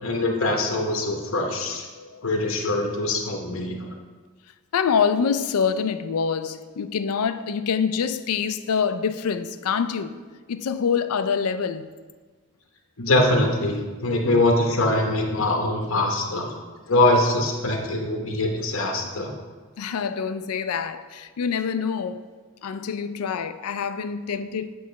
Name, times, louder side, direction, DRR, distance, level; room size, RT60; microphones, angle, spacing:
voice 1, 0.0-1.8 2.2-3.9 13.0-16.4 16.9-19.3, left 2 dB, 65° left, 1.0 m, -23 dB
voice 2, 2.0-2.3 4.7-10.2 10.5-11.9 19.8-22.2 22.6-24.7, left 6 dB, 90° left, 0.4 m, -26 dB
8.1 x 3.1 x 5.8 m
head